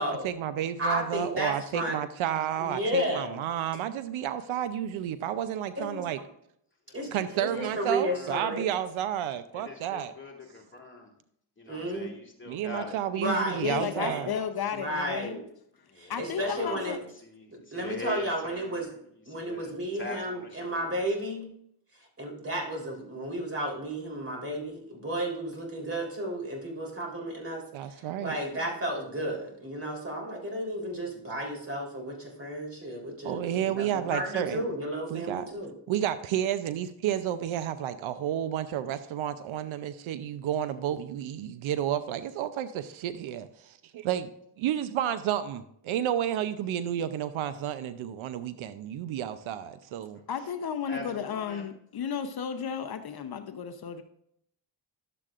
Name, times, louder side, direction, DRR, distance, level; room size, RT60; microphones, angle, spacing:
voice 1, 0.2-6.2 7.1-10.1 12.5-14.3 27.7-28.4 33.2-34.7 35.1-35.5 35.9-44.3 44.6-50.2, right 10 dB, 80° right, 12 dB, 0.7 m, -31 dB
voice 2, 0.8-2.0 2.6-3.4 5.8-6.0 6.9-7.1 7.4-8.7 11.7-12.1 13.2-14.3 14.7-15.4 16.0-17.0 17.5-18.9 19.3-21.5 22.2-35.7, right 1 dB, 30° right, 0 dB, 3.5 m, -33 dB
voice 3, 7.3-7.7 8.0-8.4 9.5-11.2 11.6-13.0 13.6-14.8 15.9-16.9 17.2-18.9 19.3-21.1 50.8-51.6, left 3 dB, 25° left, -1 dB, 2.3 m, -43 dB
voice 4, 13.6-15.4 16.1-17.0 50.3-54.0, left 8 dB, 50° left, 8 dB, 0.7 m, -33 dB
12.0 x 7.6 x 2.5 m, 0.71 s
cardioid pair, 70°, 47 cm